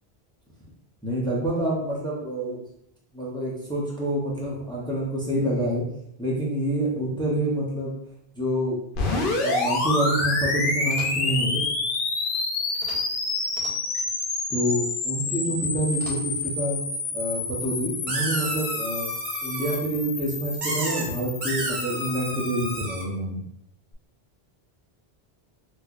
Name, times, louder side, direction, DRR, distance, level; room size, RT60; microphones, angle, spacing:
voice 1, 1.0-2.6 3.1-5.8 6.2-7.9 8.3-8.8 9.1-11.6 14.5-16.8 17.1-19.1 19.4-23.4, right 1 dB, 5° left, -5 dB, 0.7 m, -27 dB
sound 1, 8.9-22.8, left 3 dB, 60° left, 0.8 m, -28 dB
sound 2, 10.8-11.4 12.7-13.2 13.4-14.1 15.9-16.6, right 1 dB, 75° right, 1.2 m, -43 dB
sound 3, 18.1-19.8 20.6-21.0 21.4-23.0, right 1 dB, 55° right, 0.8 m, -31 dB
4.3 x 2.4 x 2.4 m, 0.76 s
omnidirectional pair, 1.0 m